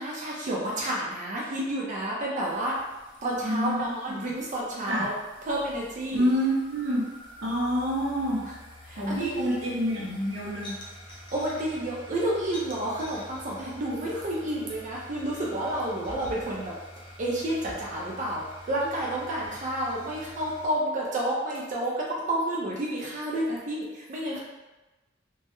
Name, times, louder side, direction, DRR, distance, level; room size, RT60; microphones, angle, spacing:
voice 1, 0.0-2.7 3.2-5.1 5.5-6.3 8.9-9.6 11.3-16.7 17.2-24.4, right 1 dB, 40° right, -4 dB, 0.4 m, -30 dB
sound 1, 2.4-20.7, equal, 25° left, 0.4 m, -47 dB
voice 2, 3.4-4.3 4.9-5.1 6.1-7.0 7.4-8.5 9.0-10.8, equal, 80° right, -4 dB, 0.7 m, -27 dB
2.2 x 2.0 x 2.9 m, 1.1 s
head